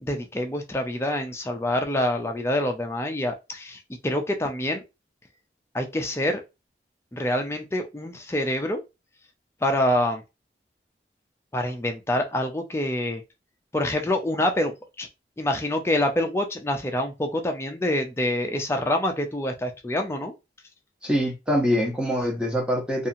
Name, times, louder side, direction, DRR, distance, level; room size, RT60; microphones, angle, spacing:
voice 1, 0.0-4.8 5.7-6.4 7.1-8.8 9.6-10.2 11.5-13.2 13.7-15.1 15.4-20.3, left 1 dB, 15° left, 0.4 m, -26 dB
voice 2, 21.0-23.1, equal, 5° right, 0.8 m, -24 dB
2.7 x 2.4 x 2.6 m
head